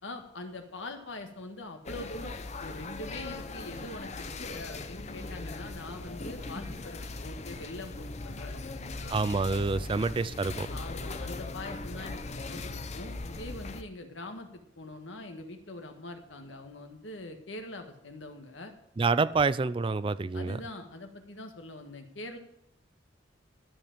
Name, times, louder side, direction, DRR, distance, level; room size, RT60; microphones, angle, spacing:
voice 1, 0.0-9.2 10.7-18.7 20.3-22.4, left 2 dB, 75° left, 1.5 m, -43 dB
sound 1, 1.8-13.8, left 3 dB, 35° left, 0.7 m, -39 dB
voice 2, 9.1-10.7 19.0-20.6, right 4 dB, 25° right, 0.3 m, -27 dB
12.5 x 5.1 x 8.8 m
head